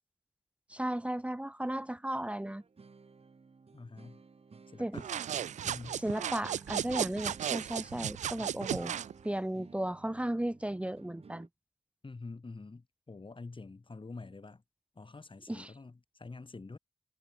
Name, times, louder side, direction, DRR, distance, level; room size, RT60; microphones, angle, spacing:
voice 1, 0.7-2.6 4.8-5.0 6.0-9.0 9.2-11.5 15.5-15.7, right 1 dB, 10° right, 0.5 m, -35 dB
sound 1, 2.4-11.5, right 4 dB, 55° right, 2.0 m, -56 dB
voice 2, 3.7-4.2 4.7-6.0 12.0-14.6 14.9-16.8, left 3 dB, 45° left, 3.3 m, -47 dB
sound 2, 4.9-9.1, right 9 dB, 85° right, 0.4 m, -35 dB
cardioid pair, 40°, 12 cm